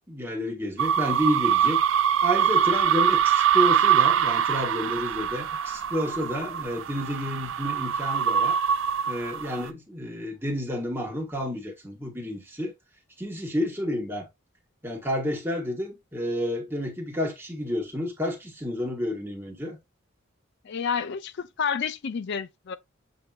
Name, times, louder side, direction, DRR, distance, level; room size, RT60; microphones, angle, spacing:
voice 1, 0.1-1.8 2.2-8.6 9.1-12.7 13.2-14.3 14.8-19.8, equal, 10° right, 1.2 m, -30 dB
sound 1, 0.8-9.7, right 8 dB, 70° right, 0.4 m, -24 dB
voice 2, 20.6-22.8, left 6 dB, 55° left, 0.4 m, -30 dB
6.8 x 2.7 x 2.3 m
head